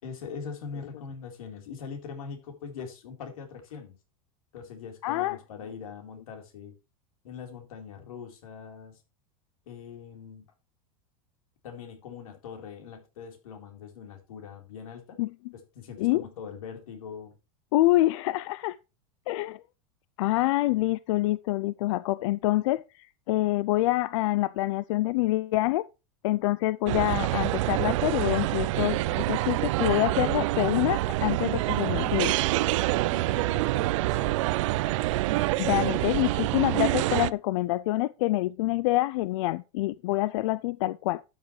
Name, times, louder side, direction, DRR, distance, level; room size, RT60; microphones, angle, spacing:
voice 1, 0.0-4.0 4.5-6.7 7.2-9.0 9.7-10.5 11.6-15.2 15.5-17.3 32.8-34.4, left 6 dB, 90° left, 4.0 m, -42 dB
voice 2, 5.0-5.4 15.2-15.3 16.0-16.2 17.7-18.8 19.3-19.6 20.2-25.8 26.2-32.3 35.6-41.2, left 18 dB, 60° left, 0.4 m, -26 dB
sound 1, 26.9-37.3, right 17 dB, 65° right, 0.5 m, -26 dB
12.5 x 7.3 x 3.2 m
supercardioid pair, 155°, 18 cm